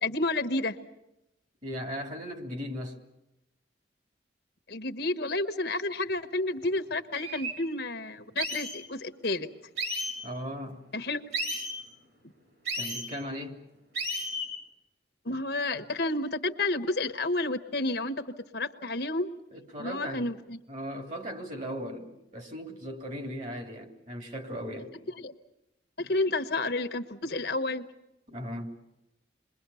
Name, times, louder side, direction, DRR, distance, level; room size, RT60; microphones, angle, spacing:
voice 1, 0.0-0.8 4.7-9.5 10.9-11.2 15.2-19.3 19.8-20.6 25.1-25.3 26.0-27.8, left 2 dB, 60° left, 1.2 m, -30 dB
voice 2, 1.6-3.0 10.2-10.9 12.7-13.6 19.5-20.3 20.7-24.9 28.3-28.8, equal, 40° right, 3.0 m, -37 dB
sound 1, 6.6-6.7 7.1-7.5 8.4-8.8 9.8-10.1 11.3-11.7 12.6-13.1 13.9-14.5, right 1 dB, 55° right, 7.8 m, -33 dB
28.5 x 22.0 x 7.1 m
head